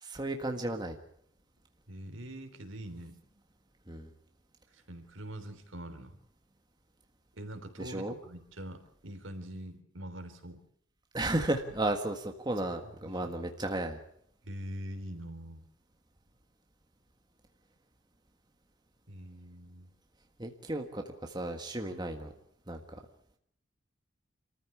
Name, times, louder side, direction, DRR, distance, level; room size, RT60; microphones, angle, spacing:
voice 1, 0.0-1.0 3.9-4.1 7.8-8.2 11.1-14.0 20.4-22.3 22.7-23.0, right 1 dB, 20° right, 4 dB, 1.6 m, -34 dB
voice 2, 1.9-3.2 4.7-6.2 7.4-10.6 12.8-13.3 14.5-15.6 19.1-19.9 21.8-22.1, equal, 70° right, 8 dB, 3.4 m, -44 dB
27.0 x 14.5 x 8.5 m, 0.70 s
head